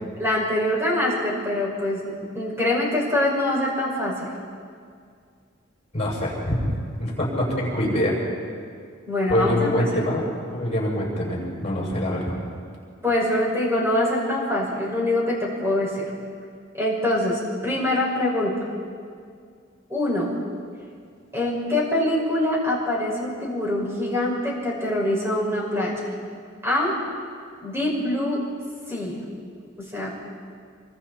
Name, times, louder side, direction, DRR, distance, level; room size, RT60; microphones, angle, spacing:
voice 1, 0.2-4.3 9.1-9.7 13.0-16.0 16.7-18.5 19.9-20.3 21.3-25.9 26.6-27.0 27.6-28.4 28.9-29.2 29.9-30.1, left 1 dB, 15° right, -4 dB, 6.2 m, -24 dB
voice 2, 5.9-6.7 7.0-8.2 9.3-12.4, equal, 30° left, -5 dB, 7.1 m, -24 dB
26.5 x 24.5 x 4.5 m, 2.2 s
head